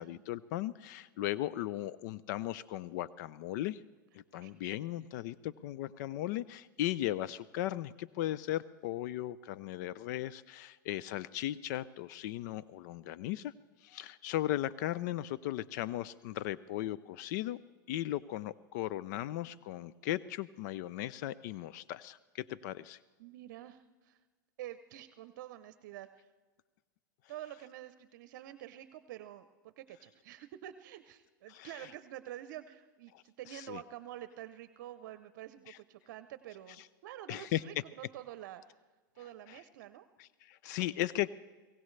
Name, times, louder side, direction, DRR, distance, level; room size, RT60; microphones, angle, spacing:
voice 1, 0.0-3.8 4.1-13.5 13.8-17.6 17.9-23.0 31.5-31.7 33.5-33.8 35.7-35.8 37.3-37.6 39.5-39.6 40.2-41.3, left 14 dB, 60° left, 18 dB, 0.4 m, -37 dB
voice 2, 23.2-24.2 24.6-26.3 27.3-38.6 39.2-40.1, right 13 dB, 65° right, 12 dB, 0.7 m, -48 dB
23.5 x 17.0 x 3.3 m, 1.3 s
hypercardioid pair, 110°, 11 cm